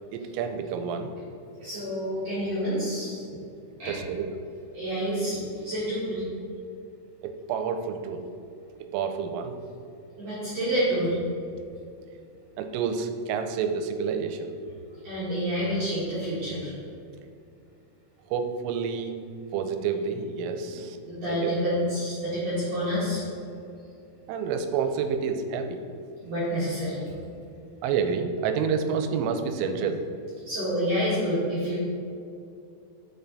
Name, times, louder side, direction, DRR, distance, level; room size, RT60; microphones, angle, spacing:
voice 1, 0.1-1.1 3.3-3.4 3.9-4.3 7.2-8.2 8.9-9.6 12.6-14.5 18.3-19.2 19.5-21.0 21.3-21.5 24.3-25.8 27.8-30.0, right 6 dB, 85° right, 7 dB, 3.1 m, -29 dB
voice 2, 1.6-3.2 3.8-3.9 4.7-6.2 10.2-11.2 15.0-16.7 21.0-23.2 26.2-27.0 30.4-31.8, equal, 65° right, -10 dB, 1.6 m, -28 dB
6.9 x 5.6 x 4.0 m, 2.5 s
omnidirectional pair, 5.9 m